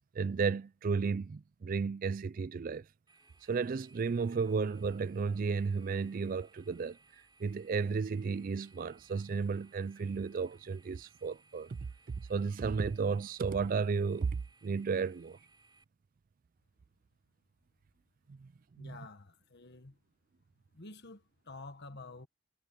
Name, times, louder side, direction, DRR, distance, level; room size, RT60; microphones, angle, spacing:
voice 1, 0.1-2.9 3.4-7.0 7.4-11.9 12.2-15.4 18.3-18.5 18.8-19.0, right 5 dB, 40° right, 0.3 m, -33 dB
sound 1, 3.1-15.8, right 3 dB, 20° right, 4.8 m, -65 dB
voice 2, 18.8-20.0 20.7-22.3, left 3 dB, 50° left, 1.5 m, -49 dB
head